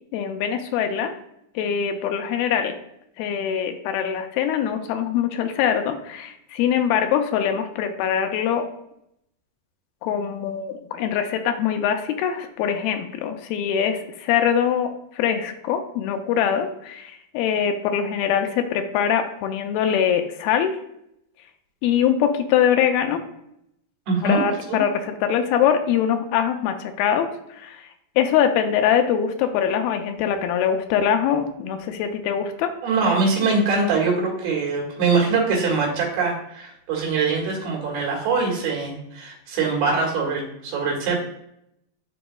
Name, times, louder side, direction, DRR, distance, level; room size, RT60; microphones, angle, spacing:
voice 1, 0.1-1.1 1.6-2.7 3.2-8.7 10.0-20.7 21.8-23.2 24.2-27.3 27.6-27.8 28.2-32.7, left 8 dB, 85° left, 6 dB, 2.4 m, -23 dB
voice 2, 24.1-24.4 24.7-24.8 32.8-41.2, right 4 dB, 85° right, -3 dB, 3.6 m, -23 dB
11.5 x 3.9 x 2.3 m, 0.76 s
omnidirectional pair, 4.3 m